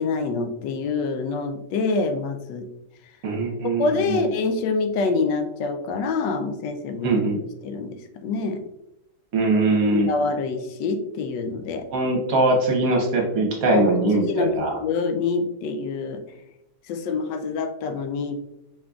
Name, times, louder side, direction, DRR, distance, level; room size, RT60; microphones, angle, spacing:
voice 1, 0.0-2.7 3.6-7.2 7.6-8.6 9.9-11.9 13.7-16.2 16.9-18.4, left 4 dB, 90° left, 8 dB, 1.2 m, -26 dB
voice 2, 3.2-4.2 7.0-7.4 9.3-10.1 11.9-14.7, right 2 dB, 60° right, 0 dB, 1.2 m, -21 dB
4.8 x 3.7 x 2.3 m, 0.87 s
omnidirectional pair, 1.8 m